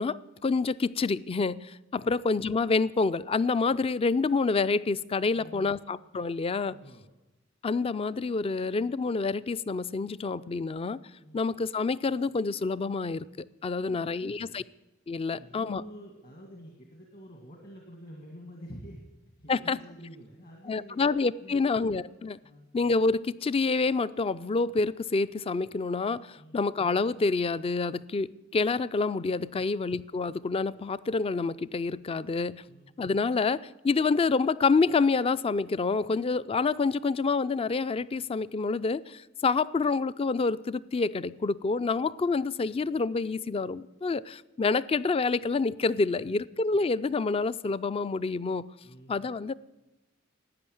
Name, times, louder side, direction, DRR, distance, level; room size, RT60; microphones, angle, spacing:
voice 1, 0.0-6.8 7.6-11.0 11.3-13.3 13.6-14.6 15.1-15.8 19.5-19.8 20.7-22.4 22.7-32.6 33.0-48.7 49.1-49.5, left 4 dB, 30° left, 18 dB, 0.4 m, -27 dB
voice 2, 5.4-5.8 6.7-7.1 11.2-11.4 13.7-14.5 15.3-19.1 19.4-21.1 21.4-21.6 22.4-22.7 26.4-26.6 29.5-29.7 32.7-32.9 48.8-49.2, equal, 50° left, 1 dB, 2.0 m, -48 dB
12.5 x 9.0 x 9.3 m, 1.0 s
head